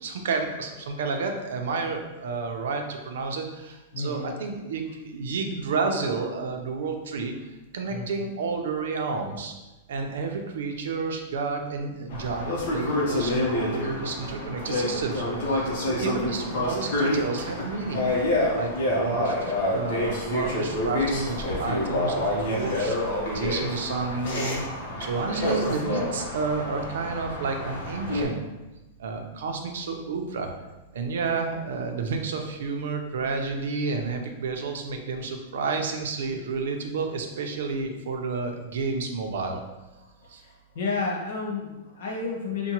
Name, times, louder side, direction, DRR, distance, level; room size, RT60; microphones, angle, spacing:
voice 1, 0.0-7.3 7.7-9.5 9.9-18.1 18.5-24.6 25.0-28.4 29.0-30.5 30.9-39.6 40.3-40.4, right 4 dB, 80° right, 4 dB, 0.6 m, -30 dB
voice 2, 3.9-4.3 7.9-8.0 40.7-42.7, left 4 dB, 75° left, -1 dB, 1.2 m, -30 dB
sound 1, 12.1-28.2, left 1 dB, 60° left, 1.0 m, -28 dB
5.7 x 2.2 x 2.9 m, 1.1 s
supercardioid pair, 175°, 0 cm